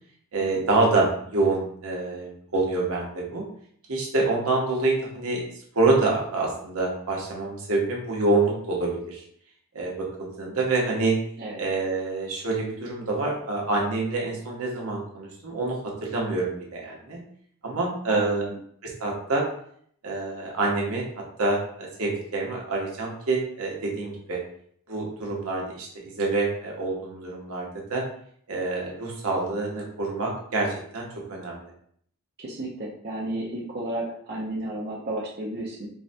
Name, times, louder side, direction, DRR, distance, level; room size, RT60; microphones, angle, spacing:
voice 1, 0.3-3.4 3.9-5.4 5.7-9.2 9.7-11.1 11.6-17.2 17.6-18.4 18.8-19.4 20.0-21.0 21.4-24.4 24.9-28.0 28.5-31.7, right 3 dB, 75° right, -2 dB, 0.9 m, -26 dB
voice 2, 18.1-18.6 32.4-35.9, right 1 dB, 50° right, -5 dB, 0.6 m, -33 dB
4.5 x 2.1 x 2.6 m, 0.63 s
head